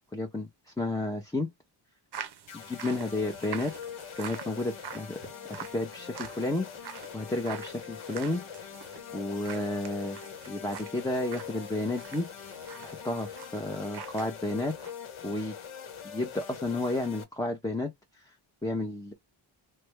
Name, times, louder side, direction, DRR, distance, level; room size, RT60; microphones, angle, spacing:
voice 1, 0.1-1.5 2.5-3.7 4.2-5.2 5.6-6.7 7.1-8.4 9.1-10.2 10.5-12.5 12.8-14.7 15.2-15.5 16.0-18.3 18.6-19.1, left 2 dB, 5° left, 0.6 m, -32 dB
sound 1, 2.1-14.3 14.6-14.9, right 8 dB, 55° right, 0.6 m, -45 dB
sound 2, 2.5-17.2, left 8 dB, 80° left, 1.0 m, -43 dB
3.2 x 2.2 x 3.1 m
wide cardioid pair, 95°, 49 cm